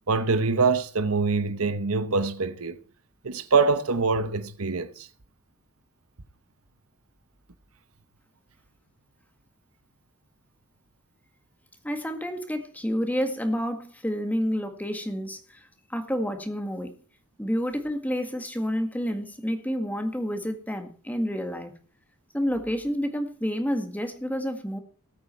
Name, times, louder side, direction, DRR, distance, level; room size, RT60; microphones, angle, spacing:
voice 1, 0.1-2.8 3.2-5.1, right 4 dB, 70° right, 1.0 m, -24 dB
voice 2, 11.8-16.9 17.4-21.7 22.3-24.8, equal, 5° left, 1.9 m, -29 dB
19.5 x 8.5 x 4.5 m
head